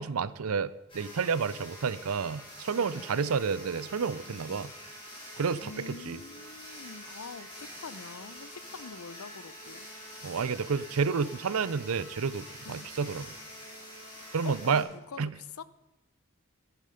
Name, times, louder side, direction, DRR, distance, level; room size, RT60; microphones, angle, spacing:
voice 1, 0.0-4.7 5.4-6.2 10.2-13.3 14.3-14.8 15.2-15.3, right 5 dB, 85° right, 18 dB, 0.5 m, -30 dB
sound 1, 0.9-14.8, equal, 25° left, 4.5 m, -46 dB
voice 2, 2.7-3.3 4.3-4.7 5.6-9.9 12.6-12.9 14.4-15.6, left 5 dB, 85° left, 17 dB, 0.7 m, -45 dB
12.5 x 12.5 x 5.1 m, 1.0 s
head